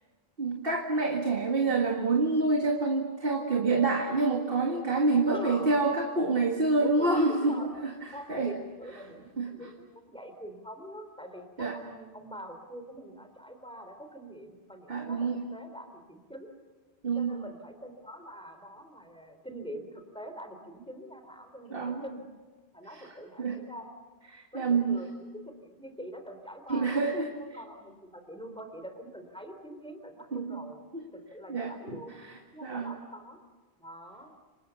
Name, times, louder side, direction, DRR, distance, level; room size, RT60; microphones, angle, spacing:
voice 1, 0.4-7.9 8.3-8.5 9.4-9.5 11.6-11.8 14.9-15.4 17.0-17.4 21.7-22.0 22.9-23.1 23.4-23.6 24.3-25.0 26.7-27.3 30.3-30.6 30.9-31.1 31.5-32.9, right 3 dB, 60° right, 2 dB, 2.1 m, -27 dB
voice 2, 5.3-5.7 6.8-7.7 8.1-16.5 17.1-22.2 22.7-23.9 24.5-30.8 31.1-32.1 32.5-33.4 33.8-34.4, equal, 5° left, 6 dB, 3.4 m, -44 dB
28.5 x 25.5 x 7.0 m, 1.4 s
omnidirectional pair, 1.1 m